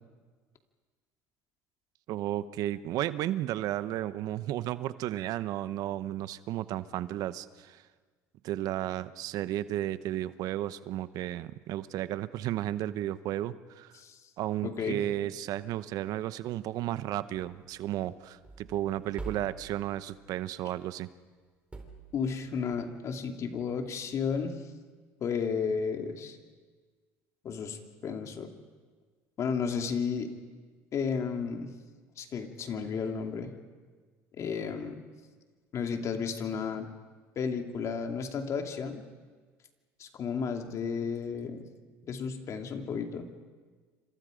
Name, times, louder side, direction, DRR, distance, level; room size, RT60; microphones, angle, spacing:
voice 1, 2.1-7.8 8.4-14.0 14.4-21.1, right 13 dB, 65° right, 14 dB, 0.9 m, -33 dB
voice 2, 14.6-15.0 22.1-24.6 25.2-26.4 27.4-28.5 29.4-30.3 30.9-31.7 32.2-33.5 34.4-35.0 35.7-36.9 37.4-39.0 40.0-41.7 42.1-43.3, left 6 dB, 50° left, 4 dB, 2.5 m, -33 dB
sound 1, 17.3-20.5 21.7-22.8, right 3 dB, 15° right, 3.9 m, -46 dB
28.5 x 26.0 x 5.1 m, 1.5 s
supercardioid pair, 90°, 7 cm